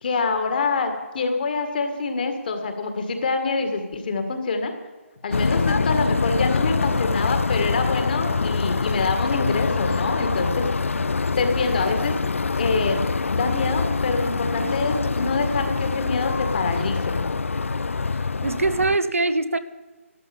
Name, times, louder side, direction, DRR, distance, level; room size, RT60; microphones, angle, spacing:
voice 1, 0.0-4.7 5.2-10.7 11.4-12.1 12.6-13.0 13.3-17.2, left 4 dB, 40° left, 6 dB, 2.0 m, -25 dB
sound 1, 5.3-19.0, left 4 dB, 65° left, 0.4 m, -24 dB
voice 2, 10.3-10.7 18.4-19.6, right 3 dB, 70° right, 12 dB, 1.0 m, -23 dB
13.0 x 12.5 x 7.3 m, 1.3 s
figure-of-eight pair, 145°, 8 cm